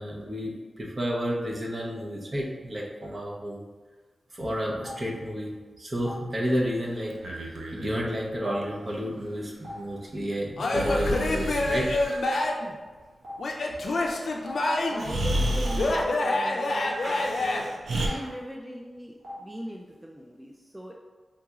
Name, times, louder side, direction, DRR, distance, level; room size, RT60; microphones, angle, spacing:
voice 1, 0.0-3.7 4.3-5.5 5.8-7.1 7.7-11.9 17.0-17.2 18.1-18.3, equal, 45° right, -3 dB, 0.7 m, -31 dB
Stream, 4.8-4.9 6.0-6.1 7.2-7.3 8.4-8.5 9.6-9.7 10.8-10.9 12.0-12.1 13.2-13.3 14.4-14.5 15.6-15.7 16.8-16.9 18.0-18.1 19.2-19.3, equal, 65° right, 1.2 m, -42 dB
Breathing, 7.1-8.0 10.7-12.2 14.4-14.5 15.0-16.1 17.0-18.1, right 1 dB, 90° right, 0.4 m, -31 dB
Male speech man speaking / Yell / Laughter, 10.6-12.7 13.4-15.1 15.8-17.6, left 2 dB, 75° left, 0.4 m, -27 dB
voice 2, 14.9-20.9, equal, 15° right, -1 dB, 0.3 m, -39 dB
3.8 x 2.9 x 2.4 m, 1.4 s
cardioid pair, 55°, 0 cm